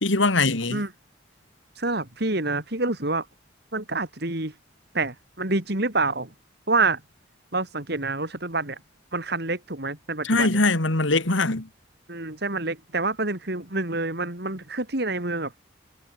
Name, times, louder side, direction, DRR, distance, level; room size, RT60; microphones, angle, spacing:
voice 1, 0.0-0.8 10.2-11.7, left 3 dB, 85° left, 2.5 m, -22 dB
voice 2, 1.8-3.3 3.7-4.5 4.9-6.3 6.7-7.0 7.5-8.8 9.1-10.6 12.1-15.5, right 3 dB, 55° right, 3.6 m, -27 dB
head